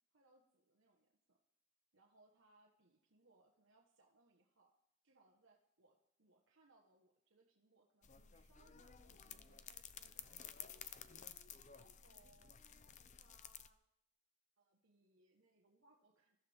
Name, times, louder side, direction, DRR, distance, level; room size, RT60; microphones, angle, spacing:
voice 1, 0.1-1.4 1.9-4.7 5.0-11.1 11.7-12.6 13.2-13.8 14.6-16.4, right 2 dB, 70° right, -1 dB, 1.4 m, -73 dB
sound 1, 8.0-13.7, left 8 dB, 35° left, 0.6 m, -54 dB
21.5 x 14.0 x 3.6 m, 0.82 s
head